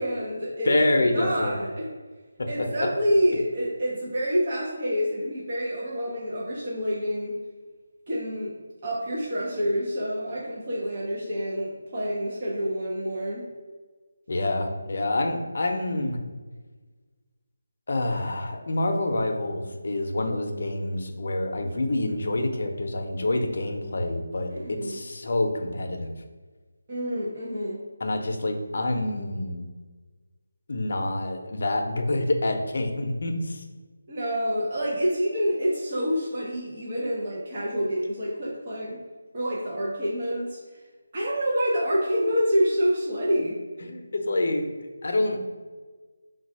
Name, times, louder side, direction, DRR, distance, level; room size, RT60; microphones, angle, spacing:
voice 1, 0.0-1.9 2.5-7.4 8.1-8.5 8.8-13.4 24.5-25.0 26.9-27.8 34.1-39.0 39.3-40.6 41.1-43.6, equal, 35° right, -6 dB, 0.8 m, -27 dB
voice 2, 0.6-1.6 2.4-2.5 14.3-16.2 17.9-26.2 28.0-29.6 30.7-33.6 43.8-44.7 45.0-45.4, left 2 dB, 55° left, 3 dB, 0.7 m, -27 dB
4.0 x 2.3 x 4.7 m, 1.4 s
figure-of-eight pair, 170°, 0 cm